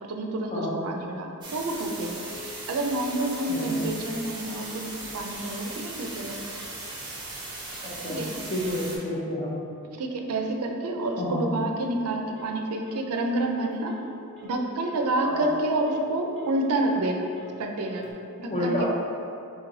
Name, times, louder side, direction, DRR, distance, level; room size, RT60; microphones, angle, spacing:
voice 1, 0.0-2.3 2.7-6.4 8.1-8.3 9.9-13.9 14.4-17.3 17.6-18.9, right 1 dB, 85° right, 3 dB, 0.5 m, -28 dB
sound 1, 1.4-9.0, right 2 dB, 20° right, 0.7 m, -38 dB
Telephone, 2.1-18.1, equal, ahead, 1.3 m, -50 dB
voice 2, 7.8-8.2 8.5-9.6 11.2-11.5 15.2-15.4 18.5-18.9, left 1 dB, 30° left, -5 dB, 0.8 m, -29 dB
4.0 x 3.1 x 3.8 m, 2.6 s
head